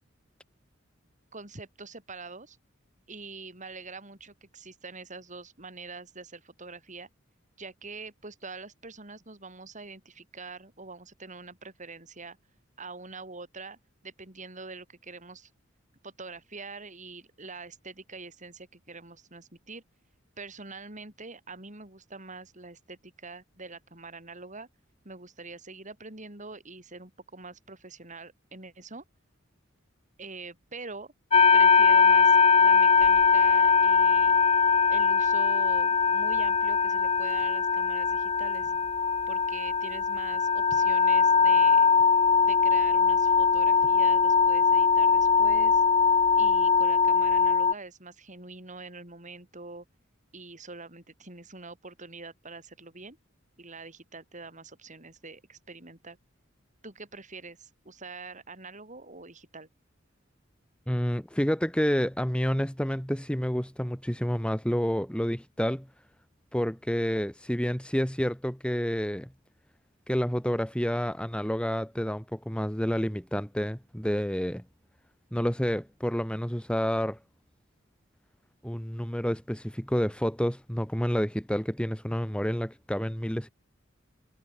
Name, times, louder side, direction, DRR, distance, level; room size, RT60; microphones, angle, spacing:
voice 1, 1.3-2.6 3.1-7.1 7.6-12.4 12.8-15.5 16.0-19.8 20.4-24.7 25.0-29.0 30.2-31.1 31.5-34.4 34.9-38.7 39.3-41.9 42.4-45.8 46.3-49.8 50.3-53.2 53.6-56.2 56.8-59.7, right 3 dB, 40° right, 7.8 m, -44 dB
sound 1, 31.3-47.7, left 5 dB, 30° left, 1.7 m, -21 dB
voice 2, 60.9-65.9 66.5-69.3 70.1-74.6 75.3-77.2 78.6-83.5, equal, 5° left, 2.8 m, -29 dB
head